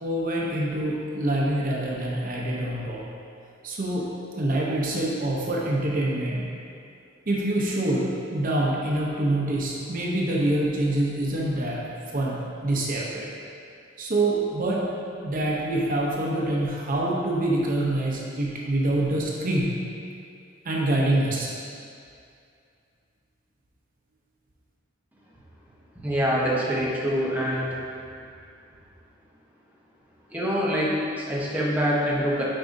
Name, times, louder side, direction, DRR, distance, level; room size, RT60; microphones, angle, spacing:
voice 1, 0.0-3.0 3.6-4.1 4.4-6.5 7.3-13.3 14.0-14.9 15.2-19.8 20.6-21.5, right 1 dB, 45° right, -3 dB, 0.7 m, -26 dB
voice 2, 25.9-27.7 30.3-32.4, equal, 10° right, -6 dB, 1.0 m, -25 dB
8.7 x 4.7 x 2.6 m, 2.4 s
head